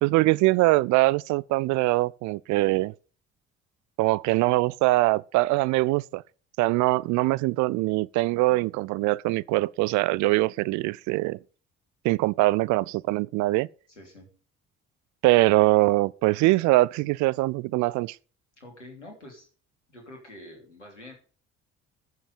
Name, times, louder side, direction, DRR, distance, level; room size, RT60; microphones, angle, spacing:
voice 1, 0.0-2.9 4.0-6.2 6.6-11.4 12.0-13.7 15.2-18.2, right 20 dB, 55° right, 0.5 m, -23 dB
voice 2, 13.9-14.3 18.6-19.5 19.9-21.1, left 1 dB, 90° left, 3.0 m, -46 dB
14.0 x 7.2 x 6.8 m
figure-of-eight pair, 45°, 35 cm